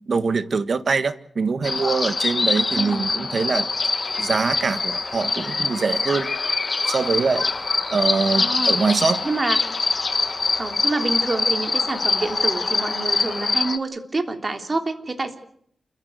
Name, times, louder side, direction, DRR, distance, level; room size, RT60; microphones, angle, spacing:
voice 1, 0.1-3.7 4.2-6.4 6.9-7.5 7.9-9.3, right 4 dB, 60° right, 13 dB, 1.6 m, -23 dB
sound 1, 1.6-13.8, left 3 dB, 45° left, 1.6 m, -24 dB
voice 2, 2.7-3.3 8.3-8.9 9.2-9.6 10.6-15.4, right 2 dB, 40° right, 6 dB, 3.5 m, -27 dB
sound 2, 3.7-13.5, left 3 dB, 75° left, 6.9 m, -46 dB
28.5 x 15.0 x 8.1 m, 0.67 s
wide cardioid pair, 85°, 0 cm